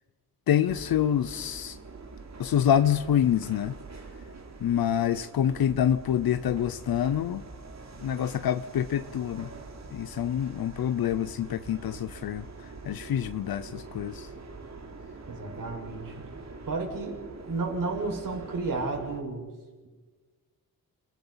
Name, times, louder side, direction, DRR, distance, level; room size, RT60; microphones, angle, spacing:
voice 1, 0.5-1.8 2.4-3.8 4.6-7.4 8.0-9.5 9.9-12.5 12.8-14.3, left 10 dB, 85° left, 12 dB, 0.9 m, -26 dB
sound 1, 0.6-19.2, right 3 dB, 50° right, 3.5 m, -44 dB
voice 2, 15.3-16.1 16.7-17.2 17.5-19.5, right 3 dB, 65° right, 1 dB, 6.6 m, -32 dB
29.5 x 20.0 x 5.8 m, 1.3 s
wide cardioid pair, 105°, 35 cm